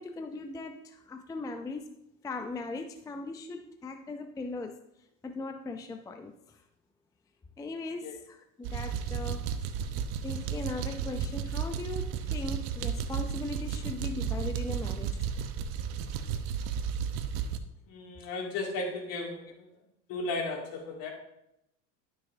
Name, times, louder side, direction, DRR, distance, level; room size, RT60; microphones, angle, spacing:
voice 1, 0.0-1.9 2.2-4.8 5.2-6.6 7.6-9.5 10.2-15.3, left 2 dB, 10° left, 6 dB, 0.5 m, -39 dB
sound 1, 8.6-17.6, right 7 dB, 60° right, 0.9 m, -33 dB
voice 2, 17.9-19.7 20.1-21.1, left 3 dB, 55° left, 0 dB, 2.5 m, -35 dB
12.0 x 6.3 x 2.7 m, 0.81 s
hypercardioid pair, 95°, 42 cm